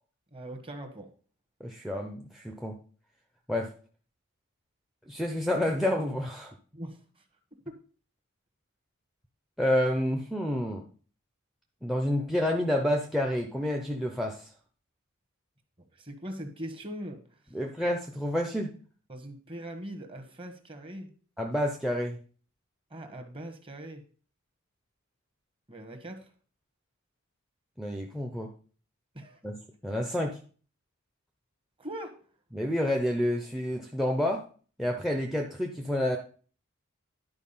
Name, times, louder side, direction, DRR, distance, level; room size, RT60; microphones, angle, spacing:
voice 1, 0.3-1.1 6.7-7.0 7.6-7.7 15.9-17.2 19.1-21.1 22.9-24.0 25.7-26.3 29.1-29.4 31.8-32.2, right 1 dB, 25° right, 5 dB, 1.4 m, -41 dB
voice 2, 1.6-2.7 3.5-3.7 5.1-6.5 9.6-10.8 11.8-14.5 17.5-18.7 21.4-22.2 27.8-28.5 29.4-29.5 29.8-30.4 32.5-34.4 34.8-36.2, left 1 dB, ahead, 3 dB, 0.7 m, -29 dB
10.5 x 4.7 x 5.6 m, 0.41 s
head